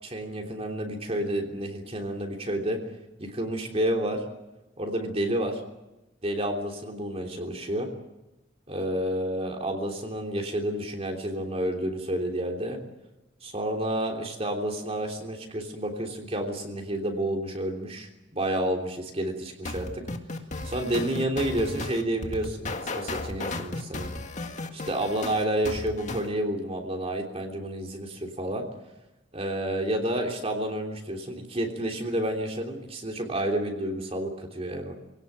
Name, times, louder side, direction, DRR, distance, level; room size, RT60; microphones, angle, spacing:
voice 1, 0.0-2.8 3.2-4.2 4.8-5.6 6.2-7.9 8.7-12.8 13.4-20.0 20.6-24.1 24.7-28.7 29.3-34.9, right 1 dB, 35° right, 2 dB, 3.2 m, -30 dB
sound 1, 19.6-26.3, left 2 dB, 40° left, 1.9 m, -35 dB
25.5 x 18.0 x 9.3 m, 0.98 s
head